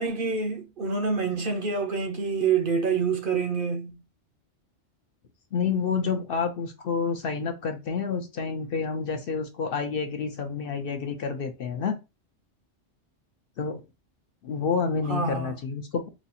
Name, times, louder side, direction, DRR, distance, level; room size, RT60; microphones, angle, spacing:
voice 1, 0.0-3.9 15.1-15.5, right 5 dB, 55° right, 0.7 m, -27 dB
voice 2, 5.5-12.0 13.6-13.8 14.4-16.1, left 5 dB, 60° left, 0.6 m, -29 dB
4.0 x 2.3 x 2.7 m
omnidirectional pair, 1.2 m